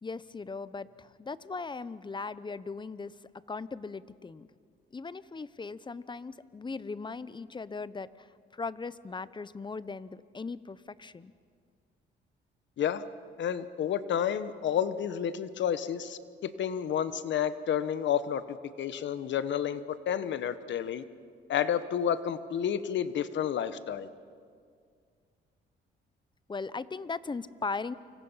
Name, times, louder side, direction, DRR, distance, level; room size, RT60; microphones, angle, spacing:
voice 1, 0.0-3.1 3.5-4.5 4.9-8.3 8.5-11.3 26.5-27.9, left 4 dB, 25° left, 16 dB, 0.8 m, -38 dB
voice 2, 13.4-21.0 21.5-24.1, left 9 dB, 65° left, 13 dB, 1.2 m, -30 dB
29.0 x 25.5 x 5.7 m, 2.1 s
cardioid pair, 90°, 20 cm